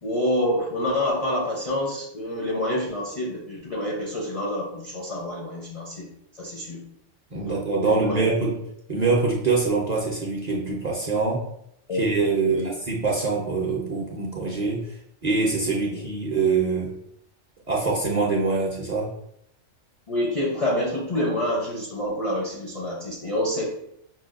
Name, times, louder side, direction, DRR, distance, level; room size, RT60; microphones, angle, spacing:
voice 1, 0.0-6.1 6.4-6.8 7.4-8.3 11.9-12.0 12.4-12.7 15.9-16.1 20.1-23.7, left 1 dB, 50° left, -3 dB, 0.4 m, -27 dB
voice 2, 7.3-8.6 8.9-11.5 11.9-16.9 17.7-19.1, right 4 dB, 45° right, -4 dB, 0.6 m, -24 dB
5.7 x 2.2 x 2.4 m, 0.75 s
omnidirectional pair, 1.4 m